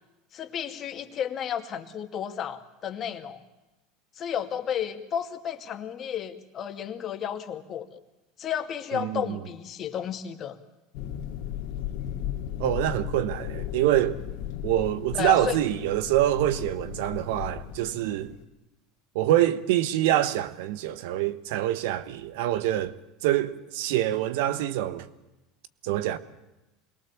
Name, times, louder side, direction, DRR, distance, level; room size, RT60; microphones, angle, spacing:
voice 1, 0.3-3.4 4.2-8.0 8.4-10.6 15.1-15.6, left 9 dB, 40° left, 2.3 m, -32 dB
voice 2, 8.9-9.4 12.6-14.2 14.6-18.3 19.1-22.9 23.2-25.1 25.8-26.2, right 13 dB, 75° right, 1.2 m, -25 dB
sound 1, 10.9-18.4, left 11 dB, 65° left, 2.4 m, -36 dB
24.5 x 22.0 x 7.3 m
supercardioid pair, 100°, 0 cm